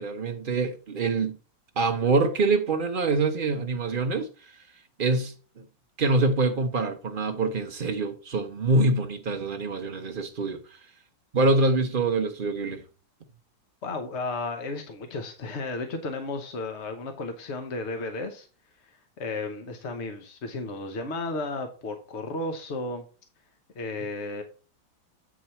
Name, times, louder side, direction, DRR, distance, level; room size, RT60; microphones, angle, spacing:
voice 1, 0.0-1.4 1.8-4.6 5.0-5.6 6.0-10.8 11.3-12.8, right 3 dB, 70° right, 0.4 m, -25 dB
voice 2, 13.8-18.5 18.8-23.0 23.7-24.4, left 2 dB, 45° left, 0.9 m, -33 dB
8.3 x 5.0 x 4.3 m
omnidirectional pair, 2.2 m